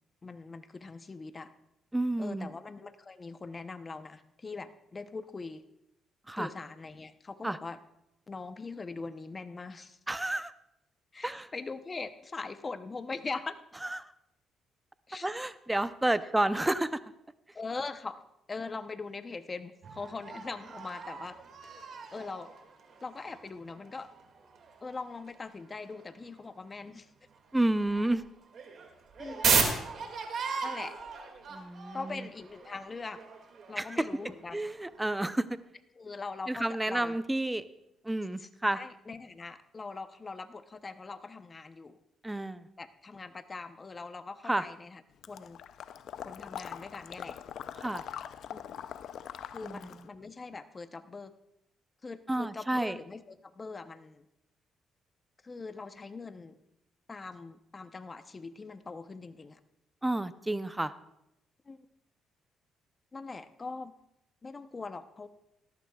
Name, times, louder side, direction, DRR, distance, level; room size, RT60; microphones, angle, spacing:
voice 1, 0.2-1.5 2.2-5.6 6.4-7.8 8.3-10.0 11.1-13.6 15.1-15.3 17.5-18.2 18.5-21.4 22.1-22.5 23.0-24.1 24.8-27.1 29.2-29.6 30.6-30.9 31.9-33.2 33.7-34.6 36.0-37.2 38.3-42.0 42.8-45.0 45.3-45.6 46.2-47.4 48.5-48.6 49.5-51.3 52.0-54.3 55.4-56.6 57.1-59.6 61.7-61.9 63.1-63.9 64.4-65.3, left 4 dB, 30° left, 10 dB, 0.7 m, -41 dB
voice 2, 1.9-2.5 6.3-6.5 7.4-7.6 10.1-10.5 11.2-11.5 13.8-14.1 15.2-17.0 27.5-28.2 31.5-32.3 33.8-34.1 34.5-35.5 36.5-37.6 38.0-38.8 42.2-42.7 44.5-44.6 47.8-48.0 49.6-49.8 52.3-53.0 60.0-60.9, right 1 dB, 10° right, 13 dB, 0.5 m, -30 dB
sound 1, 19.8-26.5 26.9-27.0 27.3-35.5, right 5 dB, 60° right, 2.1 m, -36 dB
Water / Liquid, 45.2-50.1, left 9 dB, 70° left, 0.5 m, -43 dB
18.0 x 13.5 x 2.3 m, 0.84 s
cardioid pair, 90°, 0 cm